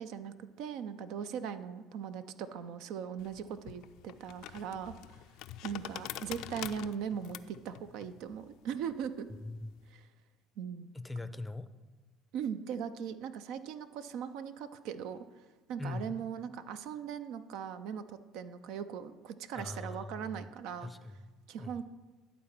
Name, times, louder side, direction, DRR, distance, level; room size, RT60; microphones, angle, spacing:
voice 1, 0.0-9.3 9.9-10.1 10.6-10.9 11.2-11.3 12.3-20.9 21.5-21.9, right 7 dB, 65° right, 12 dB, 0.4 m, -40 dB
sound 1, 3.2-9.9, left 13 dB, 65° left, 0.3 m, -46 dB
voice 2, 9.4-9.7 10.9-11.7 15.8-16.1 19.5-20.4 20.8-21.7, left 2 dB, 10° left, 13 dB, 0.5 m, -41 dB
11.5 x 4.1 x 6.0 m, 1.3 s
hypercardioid pair, 70°, 0 cm